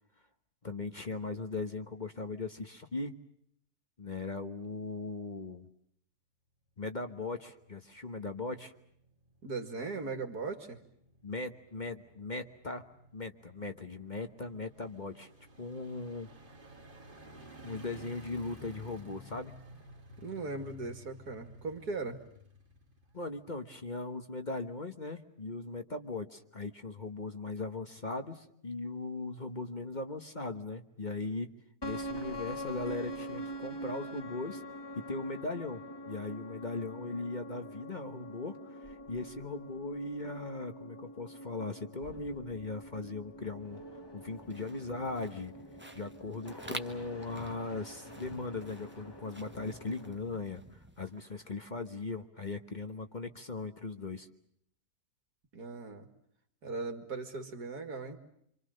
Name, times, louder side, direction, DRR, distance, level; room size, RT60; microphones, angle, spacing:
voice 1, 0.6-3.2 4.0-5.7 6.8-8.7 11.2-12.8 13.1-15.3 15.6-16.3 17.6-19.5 23.1-31.5 31.8-34.6 34.9-43.8 44.1-45.5 45.9-54.3, left 3 dB, 30° left, 7 dB, 1.2 m, -39 dB
sound 1, 7.6-23.9 24.2-24.3, equal, 35° right, 2.5 m, -55 dB
voice 2, 9.4-10.8 20.2-22.2 55.5-56.1 56.6-58.2, right 3 dB, 80° right, 5 dB, 2.9 m, -38 dB
sound 2, 31.8-50.2, equal, 15° left, 1.8 m, -45 dB
sound 3, 44.3-51.5, right 1 dB, 10° right, 1.2 m, -49 dB
26.5 x 26.5 x 6.6 m, 0.71 s
omnidirectional pair, 1.6 m